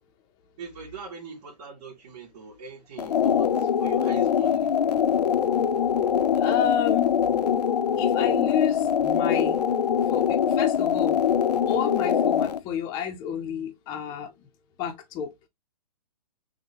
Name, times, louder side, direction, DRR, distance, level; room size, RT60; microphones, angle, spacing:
voice 1, 0.6-4.7, right 5 dB, 40° right, 2.5 m, -42 dB
sound 1, 3.0-12.6, left 8 dB, 80° left, 0.6 m, -23 dB
voice 2, 6.3-7.2 8.0-9.6 10.1-11.2 11.6-14.3 14.8-15.3, left 9 dB, 20° left, 0.6 m, -29 dB
6.4 x 2.2 x 2.8 m
hypercardioid pair, 145°, 20 cm